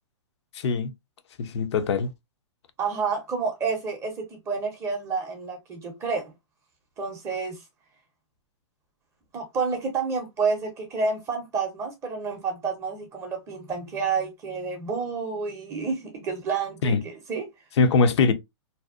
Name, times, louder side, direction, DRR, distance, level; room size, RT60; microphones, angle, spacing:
voice 1, 0.5-0.9 1.4-2.1 16.8-17.0 17.8-18.3, left 4 dB, 65° left, 0.5 m, -22 dB
voice 2, 2.8-6.3 7.0-7.6 9.3-17.4, right 5 dB, 20° right, 0.5 m, -29 dB
2.6 x 2.0 x 2.3 m
hypercardioid pair, 140°, 15 cm